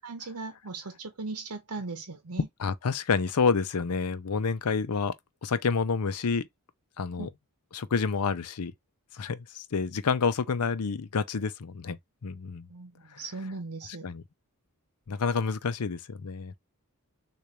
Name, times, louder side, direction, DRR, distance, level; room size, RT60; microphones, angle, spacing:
voice 1, 0.0-2.5 7.2-7.3 12.7-14.1, right 3 dB, 75° right, 0.9 m, -38 dB
voice 2, 2.6-5.1 5.4-6.5 7.0-7.3 7.7-8.7 9.1-12.0 12.2-12.7 13.1-13.2 14.0-14.2 15.1-16.6, left 5 dB, 85° left, 0.6 m, -28 dB
6.7 x 2.5 x 3.1 m
head